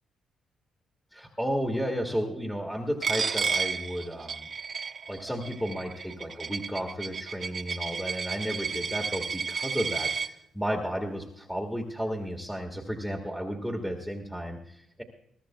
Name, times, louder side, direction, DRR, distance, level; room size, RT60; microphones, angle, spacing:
voice 1, 1.1-4.5 5.1-15.0, equal, ahead, 0 dB, 1.8 m, -33 dB
Coin (dropping), 3.0-10.3, right 5 dB, 45° right, 1.1 m, -32 dB
22.0 x 13.5 x 2.3 m, 0.76 s
cardioid pair, 105°, 0 cm